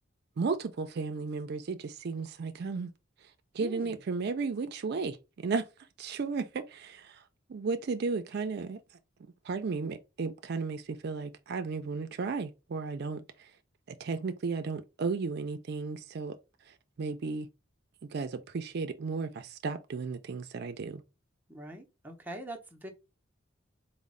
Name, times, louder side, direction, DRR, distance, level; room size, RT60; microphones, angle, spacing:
voice 1, 0.4-2.9 3.5-5.7 6.0-7.2 7.5-8.8 9.4-13.5 14.0-16.4 17.0-17.5 18.1-21.0, right 4 dB, 55° right, 0.4 m, -34 dB
voice 2, 3.6-3.9 21.5-22.9, right 1 dB, 10° right, 0.6 m, -43 dB
4.1 x 2.0 x 3.6 m
head